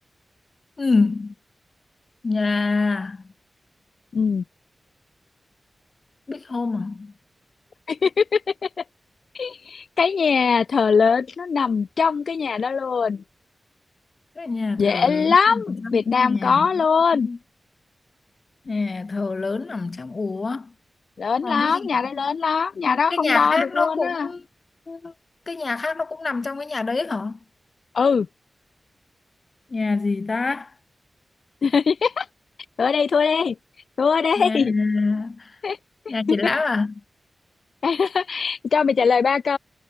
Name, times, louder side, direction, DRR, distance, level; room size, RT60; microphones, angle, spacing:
voice 1, 0.8-1.3 2.2-3.2 6.3-7.1 14.4-16.7 17.1-17.4 18.7-20.7 21.4-21.9 22.2-22.3 23.1-24.4 24.9-25.1 25.5-27.4 29.7-30.7 34.4-35.5 36.1-37.0, left 3 dB, 40° left, 2.7 m, -25 dB
voice 2, 4.1-4.4 7.9-8.4 9.4-13.2 14.8-17.3 21.2-24.3 27.9-28.3 31.6-32.2 32.8-33.5 34.0-34.7 35.6-35.8 36.3-36.4 37.8-39.6, left 5 dB, 70° left, 2.4 m, -21 dB
wide cardioid pair, 135°, 0 cm